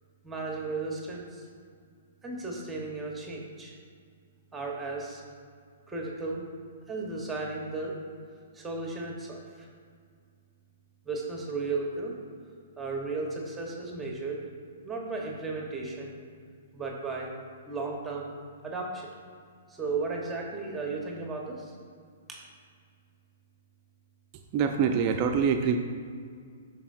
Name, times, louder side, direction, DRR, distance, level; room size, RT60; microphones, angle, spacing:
voice 1, 0.2-1.5 2.2-3.8 4.5-5.2 5.9-6.4 6.9-8.0 8.5-9.7 11.1-12.1 12.8-14.4 14.8-16.2 16.7-17.3 17.7-18.3 18.6-19.1 19.7-21.7 22.3-22.4, right 3 dB, 10° right, -1 dB, 1.1 m, -35 dB
voice 2, 24.5-25.8, right 6 dB, 40° right, 5 dB, 0.5 m, -25 dB
12.5 x 4.7 x 2.6 m, 2.1 s
figure-of-eight pair, 120°, 0 cm